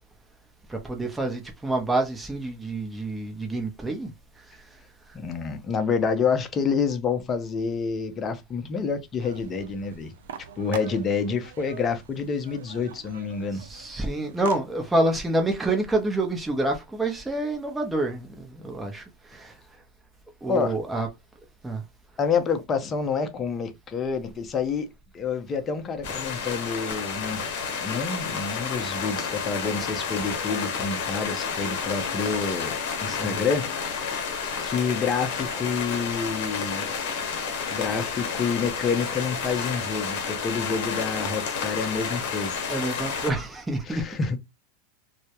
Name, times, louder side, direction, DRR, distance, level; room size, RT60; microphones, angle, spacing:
voice 1, 0.7-4.1 4.5-4.6 5.1-5.2 13.5-19.6 20.4-21.1 21.6-21.8 33.1-33.3 42.7-44.1, right 2 dB, 10° right, 0.7 m, -28 dB
voice 2, 5.1-10.1 10.6-13.6 20.5-20.8 22.2-24.9 25.1-34.1 34.6-36.9 37.7-42.6 43.9-44.4, left 5 dB, 30° left, 0.5 m, -28 dB
sound 1, 9.2-14.6, right 8 dB, 85° right, 0.3 m, -43 dB
sound 2, 26.0-43.3, left 6 dB, 65° left, 0.8 m, -30 dB
2.2 x 2.0 x 2.8 m
hypercardioid pair, 110°, 0 cm